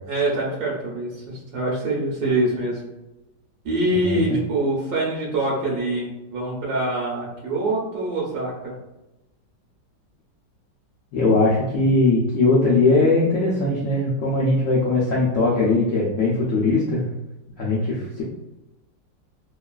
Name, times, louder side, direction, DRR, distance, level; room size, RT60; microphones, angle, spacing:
voice 1, 0.1-2.8 3.6-8.7, right 2 dB, 70° right, -4 dB, 1.1 m, -24 dB
voice 2, 3.9-4.4 11.1-17.0 17.6-18.2, left 2 dB, 80° left, -5 dB, 0.7 m, -20 dB
3.0 x 2.3 x 2.3 m, 0.98 s
omnidirectional pair, 2.0 m